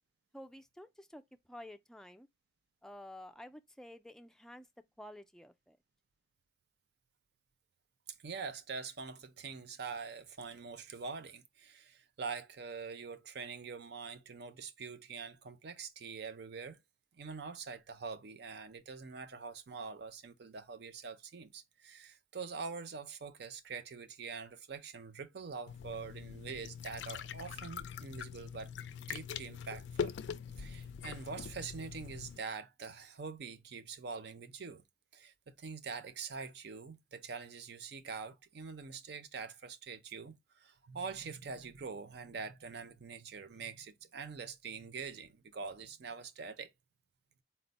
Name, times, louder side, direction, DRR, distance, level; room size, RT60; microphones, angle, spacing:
voice 1, 0.3-2.3 2.8-4.7 5.0-5.8, left 1 dB, 5° left, 0.3 m, -51 dB
voice 2, 8.2-16.8 17.1-28.7 29.1-30.1 30.6-34.8 35.1-46.7, right 5 dB, 65° right, 0.5 m, -44 dB
sound 1, 25.7-32.4, left 7 dB, 80° left, 0.4 m, -43 dB
4.3 x 2.0 x 3.9 m
head